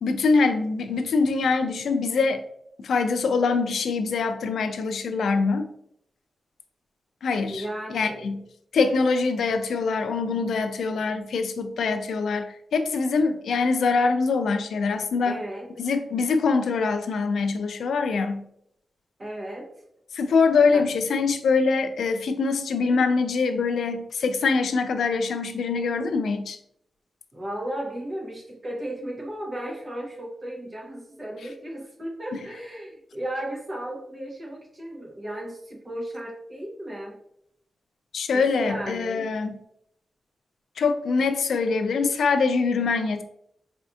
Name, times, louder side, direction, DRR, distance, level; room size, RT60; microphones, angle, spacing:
voice 1, 0.0-2.4 2.8-5.7 7.2-7.6 7.9-8.4 8.7-15.4 15.8-18.4 20.1-26.6 38.1-39.6 40.8-43.2, left 4 dB, 90° left, 9 dB, 0.3 m, -24 dB
voice 2, 7.5-8.3 15.2-15.7 19.2-19.7 20.7-20.9 27.3-37.2 38.3-39.3, right 1 dB, 30° right, -2 dB, 0.9 m, -35 dB
4.1 x 2.6 x 2.3 m, 0.74 s
wide cardioid pair, 145°, 0 cm